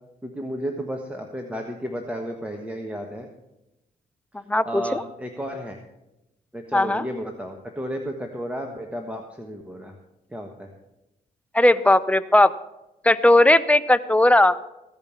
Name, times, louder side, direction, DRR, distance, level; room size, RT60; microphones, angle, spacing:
voice 1, 0.2-3.3 4.6-5.8 6.5-9.9 10.3-10.7, equal, 10° right, 3 dB, 1.3 m, -33 dB
voice 2, 4.5-5.0 6.7-7.0 11.5-12.5 13.0-14.6, left 1 dB, 10° left, 14 dB, 0.6 m, -17 dB
15.0 x 5.3 x 7.3 m, 0.93 s
cardioid pair, 75°, 16 cm